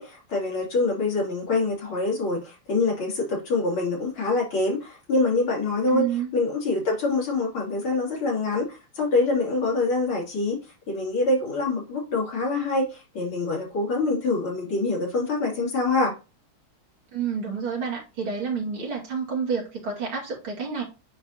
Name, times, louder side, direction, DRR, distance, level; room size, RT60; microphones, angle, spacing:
voice 1, 0.0-6.1 6.3-10.6 10.9-16.1, left 3 dB, 75° left, -3 dB, 3.8 m, -25 dB
voice 2, 5.9-6.3 17.1-20.8, right 6 dB, 70° right, -3 dB, 3.2 m, -29 dB
9.6 x 3.5 x 2.9 m, 0.29 s
omnidirectional pair, 2.4 m